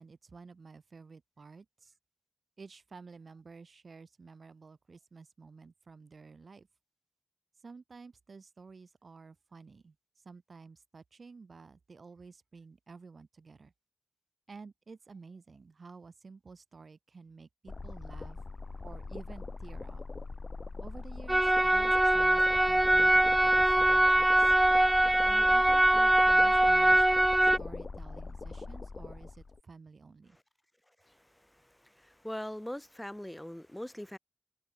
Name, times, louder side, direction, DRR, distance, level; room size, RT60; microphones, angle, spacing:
voice 1, 0.0-1.9 2.6-6.7 7.6-9.9 10.2-13.7 14.5-18.4 18.8-20.0 20.8-24.5 25.2-27.0 27.6-30.4, right 4 dB, 75° right, 2.6 m, -51 dB
sound 1, 17.7-29.6, left 3 dB, 60° left, 1.2 m, -41 dB
sound 2, 21.3-27.6, right 1 dB, 20° right, 0.3 m, -23 dB
voice 2, 31.0-34.2, left 1 dB, 10° left, 5.5 m, -42 dB
wide cardioid pair, 65°, 0 cm